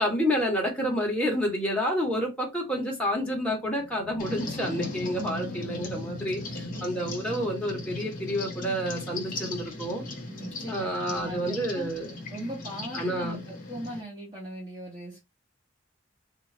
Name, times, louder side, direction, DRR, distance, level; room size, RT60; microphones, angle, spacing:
voice 1, 0.0-10.0 10.7-12.1 12.9-13.4, equal, 5° left, 1.0 m, -29 dB
Animal, 3.2-7.7, left 2 dB, 70° left, 0.3 m, -42 dB
sound 1, 4.2-14.0, left 2 dB, 45° left, 1.0 m, -38 dB
voice 2, 6.5-7.1 10.2-11.9 12.3-15.2, right 1 dB, 20° right, 1.0 m, -40 dB
3.6 x 2.5 x 3.2 m
head